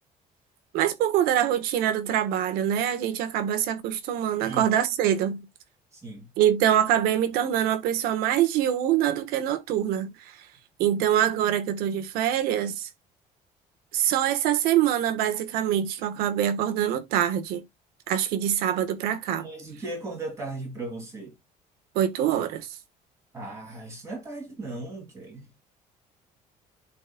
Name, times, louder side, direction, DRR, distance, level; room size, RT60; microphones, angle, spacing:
voice 1, 0.7-5.5 6.4-10.5 10.8-12.9 13.9-17.6 18.1-19.5 21.9-22.8, right 10 dB, 85° right, 1.4 m, -24 dB
voice 2, 5.9-6.3 19.4-21.3 23.3-25.5, right 2 dB, 20° right, 2.7 m, -37 dB
11.5 x 4.1 x 2.3 m
cardioid pair, 175°, 15 cm